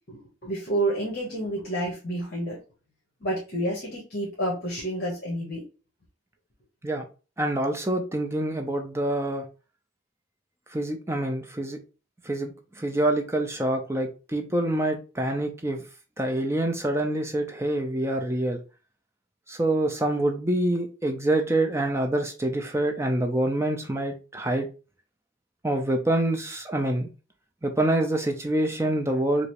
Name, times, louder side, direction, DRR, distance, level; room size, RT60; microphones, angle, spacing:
voice 1, 0.1-2.6 3.2-5.6, right 1 dB, 45° left, -3 dB, 1.0 m, -29 dB
voice 2, 7.4-9.5 10.7-11.8 12.3-12.5 12.8-15.8 16.2-18.6 19.5-24.7 25.6-27.1 27.6-29.5, right 1 dB, 10° right, 4 dB, 0.5 m, -26 dB
4.9 x 2.0 x 3.0 m, 0.33 s
head